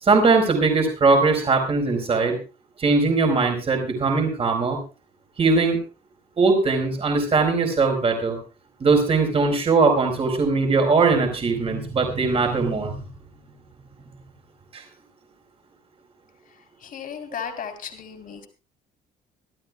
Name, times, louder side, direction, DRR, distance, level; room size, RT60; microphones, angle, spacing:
voice 1, 0.0-2.4 2.8-4.8 5.4-5.8 6.4-8.4 8.8-13.1 14.7-14.8, right 4 dB, 35° right, 4 dB, 4.4 m, -20 dB
voice 2, 16.8-18.5, left 7 dB, 55° left, 7 dB, 3.6 m, -35 dB
25.5 x 12.5 x 2.4 m, 0.32 s
cardioid pair, 110°, 17 cm